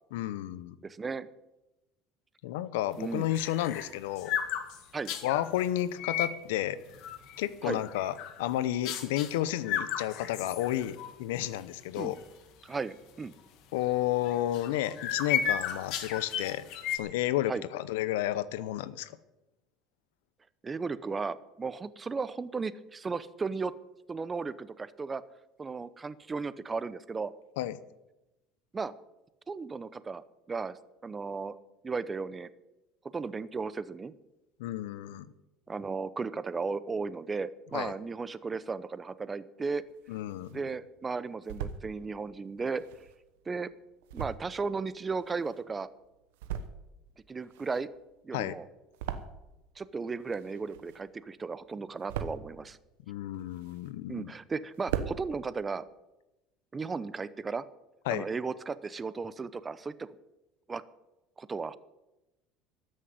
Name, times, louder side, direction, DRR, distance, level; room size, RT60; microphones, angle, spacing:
voice 1, 0.1-0.7 2.4-4.3 5.2-6.8 7.4-12.2 13.7-16.6 16.9-19.1 27.6-27.8 34.6-35.3 37.7-37.9 40.1-40.6 48.3-48.6 53.1-54.3 58.1-58.3, left 13 dB, 85° left, 16 dB, 0.7 m, -31 dB
voice 2, 0.8-1.3 3.0-3.2 4.9-5.1 7.6-7.8 12.0-12.1 12.6-13.3 17.5-17.6 20.6-23.7 24.1-25.2 25.6-27.3 28.7-28.9 29.5-30.2 30.5-31.6 31.8-32.5 33.1-34.1 35.7-39.8 40.5-42.8 43.5-43.7 44.1-45.9 47.3-47.9 48.2-48.6 49.8-52.8 54.1-55.8 56.7-57.6 58.1-60.1 60.7-60.8 61.4-61.8, right 4 dB, 25° right, 16 dB, 0.8 m, -35 dB
sound 1, 3.0-5.4 5.9-6.4 6.8-7.4 7.8-8.4 8.9-9.3 9.6-11.1 11.5-11.6 12.0-12.2 12.7-12.8 14.3-17.0, left 9 dB, 65° left, 1.7 m, -34 dB
sound 2, 39.7-40.7 41.1-41.8 42.5-45.8 46.2-47.0 47.3-49.7 50.0-51.2 51.6-52.6 53.1-54.2 54.5-54.6 54.7-55.2, right 9 dB, 85° right, 1.0 m, -39 dB
13.5 x 6.5 x 9.5 m, 0.97 s
supercardioid pair, 90°, 0 cm